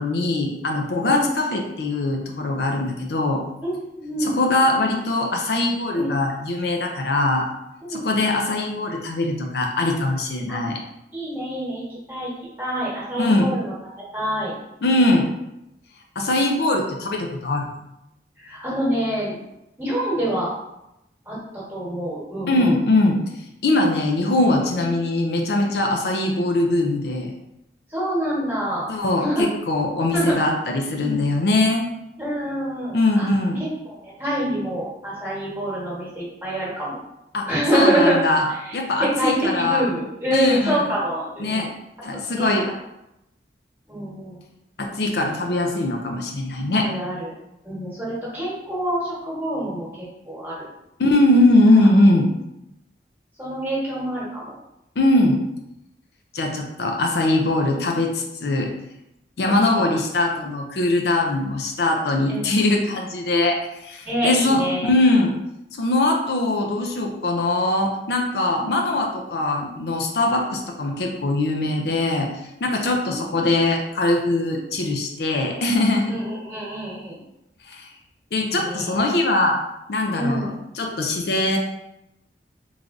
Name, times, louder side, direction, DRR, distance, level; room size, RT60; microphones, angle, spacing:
voice 1, 0.0-3.4 4.2-7.5 7.9-10.8 13.2-13.5 14.8-15.3 16.2-17.7 22.5-23.2 23.6-27.3 28.9-31.9 32.9-33.6 37.3-38.5 38.7-39.8 40.3-40.8 41.4-41.7 42.0-42.7 44.8-46.9 51.0-52.3 55.0-55.4 56.3-58.7 59.4-65.3 65.8-72.3 72.6-76.1 77.7-77.8 78.3-79.6 79.9-81.6, left 2 dB, 65° left, 2 dB, 0.5 m, -21 dB
voice 2, 3.6-4.4 5.9-6.1 7.8-8.1 10.5-10.6 11.1-12.3 12.6-13.7 14.1-14.5 16.1-16.3 18.4-19.4 19.8-20.5 21.3-22.8 24.7-24.9 27.9-28.9 29.2-29.4 30.1-30.3 32.2-33.3 33.8-37.0 37.5-38.2 38.6-41.7 42.1-42.5 43.9-44.4 46.7-47.3 47.6-50.7 51.8-51.9 53.4-54.5 57.7-57.8 59.4-59.9 62.3-62.6 64.0-64.9 73.1-73.5 76.1-77.2 78.4-78.9 80.2-80.5, right 1 dB, 10° right, -8 dB, 1.2 m, -26 dB
3.6 x 3.2 x 2.5 m, 0.87 s
head